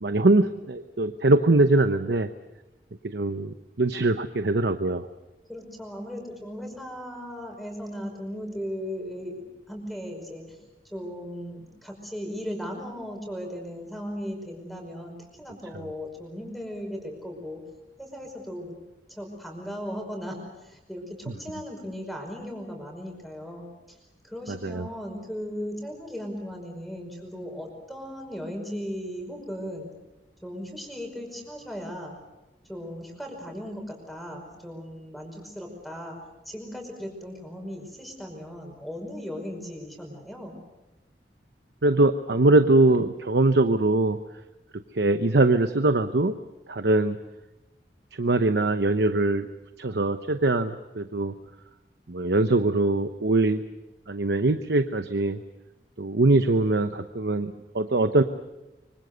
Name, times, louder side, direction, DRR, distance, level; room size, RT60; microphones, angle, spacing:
voice 1, 0.0-2.3 3.0-5.1 24.5-24.9 41.8-44.2 44.9-46.4 46.7-47.2 48.1-49.5 49.8-51.3 52.1-53.6 54.1-55.4 56.0-58.2, right 2 dB, 75° right, 9 dB, 0.9 m, -22 dB
voice 2, 5.5-10.6 10.9-17.6 18.0-18.7 19.1-24.0 24.2-29.9 30.4-32.1 32.7-36.2 36.5-40.6, equal, ahead, 2 dB, 5.2 m, -37 dB
25.0 x 24.5 x 6.8 m, 1.0 s
head